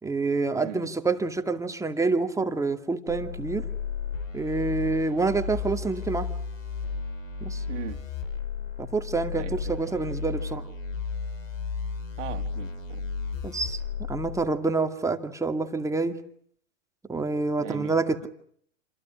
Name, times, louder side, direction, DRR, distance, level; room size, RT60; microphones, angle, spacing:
voice 1, 0.0-3.7 4.3-6.3 7.4-7.6 8.8-10.7 13.4-13.8 14.1-16.2 17.1-18.3, right 3 dB, 10° right, 2.2 m, -27 dB
voice 2, 0.6-0.9 7.7-8.0 9.3-9.7 12.2-13.0 17.6-17.9, right 11 dB, 70° right, 2.4 m, -39 dB
sound 1, 3.1-14.4, left 5 dB, 85° left, 5.8 m, -33 dB
28.0 x 27.5 x 6.2 m
hypercardioid pair, 125°, 38 cm